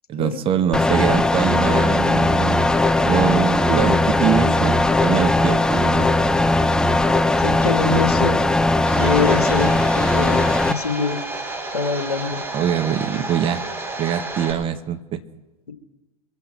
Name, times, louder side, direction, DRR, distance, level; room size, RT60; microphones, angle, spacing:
voice 1, 0.1-2.6 3.0-6.2 7.9-8.0 12.5-13.6 14.0-15.2, right 9 dB, 30° right, 10 dB, 1.1 m, -23 dB
sound 1, 0.7-10.7, left 2 dB, 5° left, 0.5 m, -18 dB
voice 2, 7.4-8.4 8.9-11.2 11.7-12.4, left 5 dB, 85° left, 7 dB, 1.7 m, -24 dB
Domestic sounds home sounds, 8.9-14.5, right 2 dB, 10° right, 3.7 m, -31 dB
24.0 x 8.2 x 5.6 m, 1.1 s
figure-of-eight pair, 100°, 19 cm